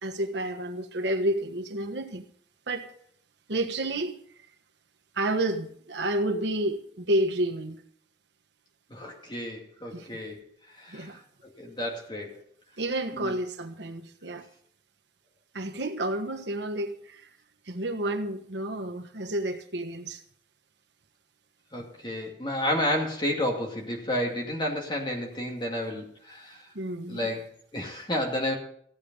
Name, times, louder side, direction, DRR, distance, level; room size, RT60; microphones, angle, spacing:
voice 1, 0.0-2.2 2.7-2.9 3.5-4.2 5.1-7.8 9.9-10.1 10.9-11.2 12.8-14.4 15.5-17.2 17.7-20.2 26.7-27.3, right 1 dB, 75° right, 1.3 m, -30 dB
voice 2, 8.9-10.4 10.8-11.1 11.6-12.4 13.1-13.3 21.7-26.6 27.1-28.5, left 1 dB, 25° left, 2.3 m, -31 dB
15.5 x 8.8 x 5.4 m
head